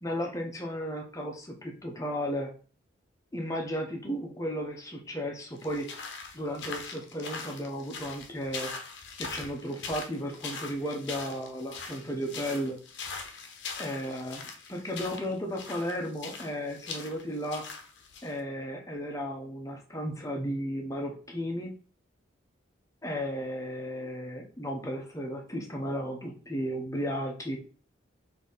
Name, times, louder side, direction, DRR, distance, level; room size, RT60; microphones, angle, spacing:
voice 1, 0.0-2.5 3.3-5.9 6.3-8.7 9.2-12.8 13.8-14.4 14.7-17.6 18.2-21.7 23.0-27.6, equal, 15° left, 1 dB, 0.7 m, -34 dB
sound 1, 5.6-18.4, left 5 dB, 60° left, 0.7 m, -41 dB
3.9 x 2.7 x 3.9 m, 0.40 s
head